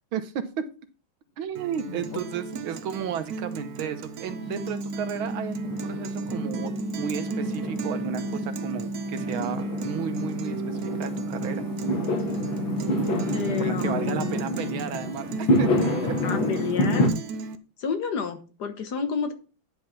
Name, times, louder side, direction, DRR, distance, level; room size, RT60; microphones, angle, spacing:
voice 1, 0.1-0.5 1.4-11.6 13.6-16.4, right 8 dB, 90° right, 10 dB, 1.8 m, -33 dB
Guitar, 1.5-17.6, right 5 dB, 60° right, 1.2 m, -37 dB
voice 2, 1.9-2.2 13.3-14.8 16.2-17.1 17.8-19.3, left 6 dB, 60° left, 8 dB, 1.7 m, -30 dB
Fireworks, 2.5-17.1, left 1 dB, 85° left, 2.8 m, -29 dB
sound 1, 4.5-14.5, right 1 dB, 5° right, 0.3 m, -34 dB
9.9 x 5.4 x 5.8 m, 0.34 s
omnidirectional pair, 2.2 m